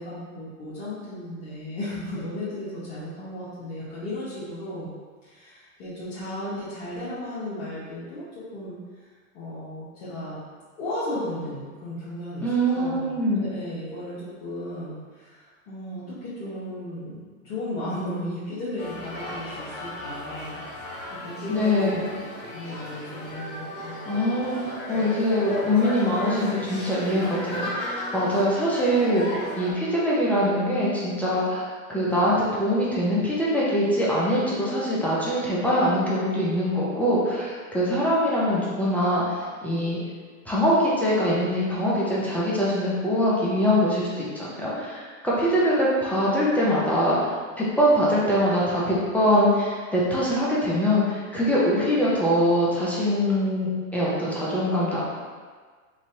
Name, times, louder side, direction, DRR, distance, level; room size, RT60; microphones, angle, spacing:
voice 1, 0.0-4.9 5.2-8.8 9.3-10.4 10.7-12.5 12.7-13.1 13.3-20.6 21.2-22.0 22.5-24.1, left 1 dB, 50° left, -12 dB, 1.2 m, -35 dB
voice 2, 12.4-13.4 21.5-22.0 24.1-29.2 29.6-39.2 39.6-40.0 40.5-55.0, equal, 5° left, -8 dB, 0.3 m, -23 dB
sound 1, 18.8-29.7, left 1 dB, 25° left, 0.9 m, -35 dB
3.2 x 2.6 x 2.6 m, 1.5 s
hypercardioid pair, 115°, 41 cm